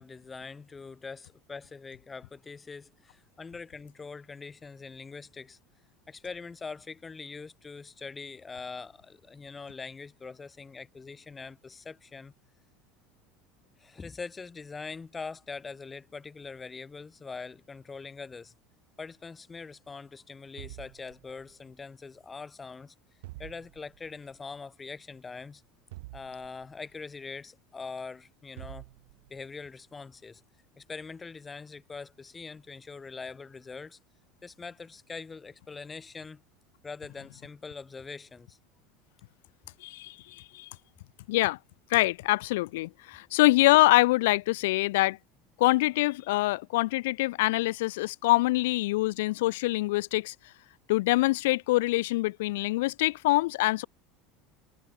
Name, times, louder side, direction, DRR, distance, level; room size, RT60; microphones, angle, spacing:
voice 1, 0.0-5.6 6.1-12.3 13.8-18.5 19.0-22.9 23.4-25.6 26.1-28.8 29.3-30.4 30.8-34.0 34.4-36.4 36.8-38.6, left 4 dB, 20° left, 7.4 m, -43 dB
sound 1, 20.6-21.7 23.2-24.2 25.9-27.0 28.6-29.5, right 20 dB, 75° right, 4.6 m, -47 dB
voice 2, 39.8-40.7 41.3-41.6 41.9-45.2 45.6-50.3 50.9-53.8, left 19 dB, 75° left, 0.7 m, -25 dB
hypercardioid pair, 80°, 0 cm